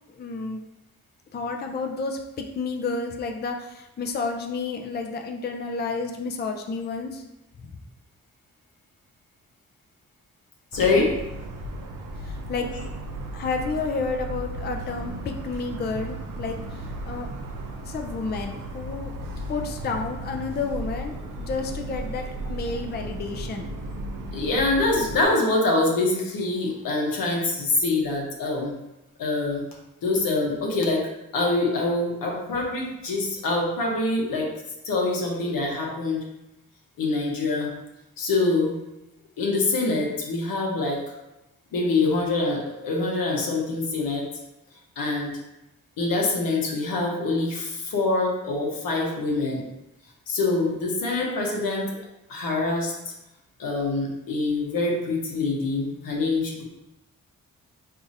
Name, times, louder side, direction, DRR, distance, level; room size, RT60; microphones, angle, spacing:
voice 1, 0.1-0.6 1.3-7.2 7.6-7.7 12.2-12.7 13.3-17.3 17.9-19.1 19.5-23.7, left 4 dB, 30° left, 4 dB, 0.4 m, -31 dB
voice 2, 10.7-11.1 24.3-28.7 29.2-29.6 30.0-31.0 31.3-34.5 34.8-36.2 37.0-37.7 38.2-38.7 39.4-41.0 41.7-44.3 45.0-45.3 46.0-49.6 50.3-51.9 52.3-52.9 53.6-56.6, left 2 dB, 75° left, -2 dB, 0.9 m, -25 dB
Motor vehicle (road) / Siren, 10.7-25.3, right 1 dB, 70° right, 0.6 m, -35 dB
3.8 x 2.6 x 2.6 m, 0.94 s
supercardioid pair, 45°, 34 cm